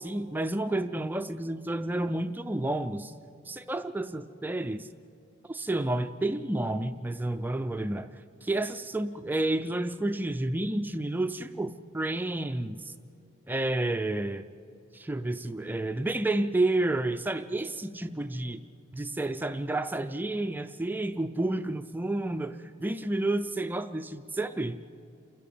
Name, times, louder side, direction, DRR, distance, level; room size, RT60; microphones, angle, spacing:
voice 1, 0.0-3.1 3.5-4.9 5.5-8.1 8.4-12.9 13.5-14.4 14.9-18.6 18.9-24.8, right 2 dB, 10° right, 9 dB, 0.4 m, -30 dB
29.0 x 11.0 x 8.5 m, 2.5 s
head